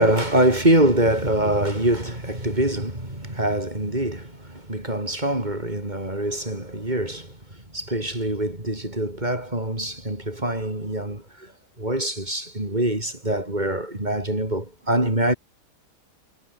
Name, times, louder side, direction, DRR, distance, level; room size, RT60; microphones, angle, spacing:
voice 1, 0.0-7.4 7.7-11.5 11.8-15.3, right 1 dB, 25° right, 6.7 m, -24 dB
omnidirectional pair, 1.8 m